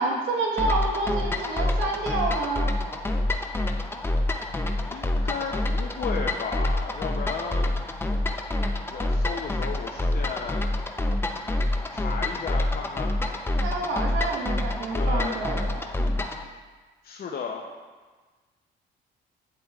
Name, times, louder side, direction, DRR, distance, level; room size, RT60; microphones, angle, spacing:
voice 1, 0.0-2.7 13.6-15.8, right 3 dB, 85° right, 0 dB, 1.4 m, -28 dB
sound 1, 0.6-16.4, left 1 dB, 10° left, 0.6 m, -27 dB
voice 2, 4.8-7.7 8.9-10.7 11.9-13.1 14.9-15.4 17.0-17.6, left 5 dB, 50° left, 0 dB, 0.7 m, -34 dB
9.4 x 7.9 x 2.4 m, 1.4 s
cardioid pair, 90°, 20 cm